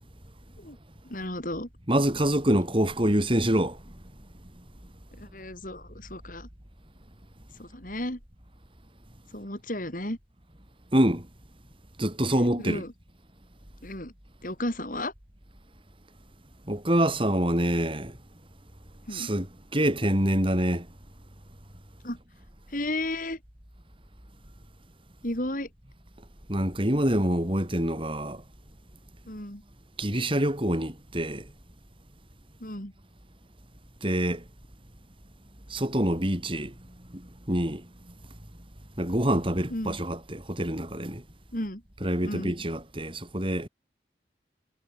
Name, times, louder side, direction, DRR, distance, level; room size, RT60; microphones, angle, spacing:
voice 1, 1.1-1.7 5.2-6.5 7.6-8.2 9.3-10.2 12.6-12.9 13.8-14.1 14.4-15.1 19.1-19.3 22.0-22.2 22.7-23.4 25.2-25.7 29.3-29.6 32.6-32.9 39.7-40.0 41.5-41.8 42.2-42.5, left 1 dB, 50° left, 6.6 m, -33 dB
voice 2, 1.9-3.8 10.9-11.3 12.0-12.8 16.7-18.2 19.1-19.5 19.7-20.9 26.5-28.4 30.0-31.5 34.0-34.4 35.7-36.7 37.1-37.9 39.0-41.2 42.0-43.7, right 1 dB, 30° right, 4.7 m, -26 dB
head